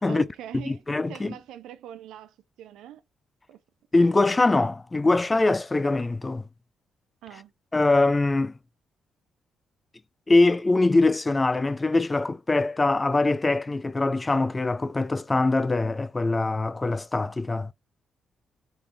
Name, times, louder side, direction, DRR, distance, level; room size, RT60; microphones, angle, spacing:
voice 1, 0.0-0.8 1.1-3.0 3.5-3.6 7.2-7.5, right 11 dB, 80° right, 0.4 m, -42 dB
voice 2, 0.7-1.3 3.9-6.4 7.7-8.5 10.3-17.7, left 2 dB, 25° left, 0.3 m, -23 dB
3.2 x 3.2 x 3.4 m
supercardioid pair, 55°, 0 cm